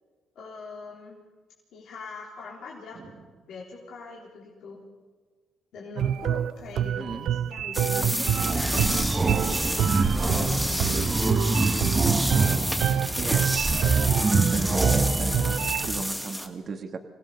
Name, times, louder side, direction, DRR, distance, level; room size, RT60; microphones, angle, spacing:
voice 1, 0.4-1.2 1.7-3.2 3.5-4.8 5.7-11.2 12.5-13.2, left 4 dB, 75° left, -4 dB, 3.7 m, -42 dB
sound 1, 6.0-15.9, right 10 dB, 75° right, 0.5 m, -27 dB
voice 2, 7.0-7.3 13.2-13.5 14.5-17.0, right 5 dB, 50° right, 7 dB, 1.6 m, -35 dB
sound 2, 7.7-16.5, equal, ahead, 2.4 m, -30 dB
sound 3, 7.9-16.0, right 3 dB, 25° right, 1.1 m, -26 dB
26.0 x 17.0 x 6.5 m, 1.4 s
cardioid pair, 90°, 0 cm